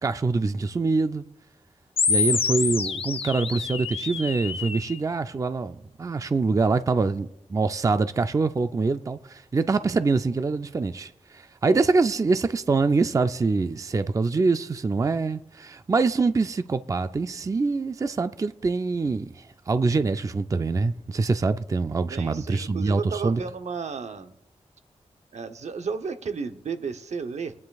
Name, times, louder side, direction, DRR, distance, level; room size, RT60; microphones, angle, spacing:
voice 1, 0.0-1.2 2.1-23.4, right 4 dB, 30° right, 0.4 m, -25 dB
sound 1, 2.0-5.0, left 5 dB, 55° left, 0.6 m, -27 dB
voice 2, 22.1-24.3 25.3-27.5, right 5 dB, 80° right, 0.8 m, -33 dB
23.0 x 9.5 x 2.3 m
wide cardioid pair, 125°, 12 cm